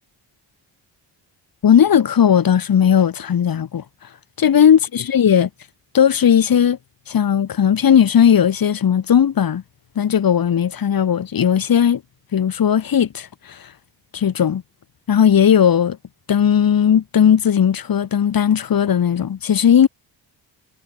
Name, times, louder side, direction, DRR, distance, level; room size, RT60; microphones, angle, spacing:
voice 1, 1.6-3.8 4.4-5.5 5.9-6.8 7.1-9.6 10.0-12.0 12.3-13.6 14.1-14.6 15.1-16.0 16.3-19.9, left 8 dB, 50° left, 1.8 m, -16 dB
cardioid pair, 80°, 44 cm